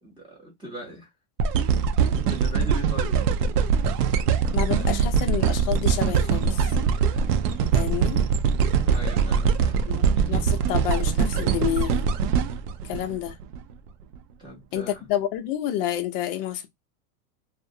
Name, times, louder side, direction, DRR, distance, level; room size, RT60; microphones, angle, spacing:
voice 1, 0.0-1.1 2.2-3.2 8.9-9.8 13.0-13.1 14.4-15.1, right 2 dB, 10° right, 0.7 m, -39 dB
sound 1, 1.4-13.6 14.1-14.2, right 6 dB, 80° right, 0.6 m, -22 dB
voice 2, 4.5-6.7 7.7-8.2 9.9-12.1 12.9-13.3 14.7-16.7, left 11 dB, 40° left, 0.4 m, -29 dB
2.3 x 2.0 x 2.6 m
supercardioid pair, 150°, 47 cm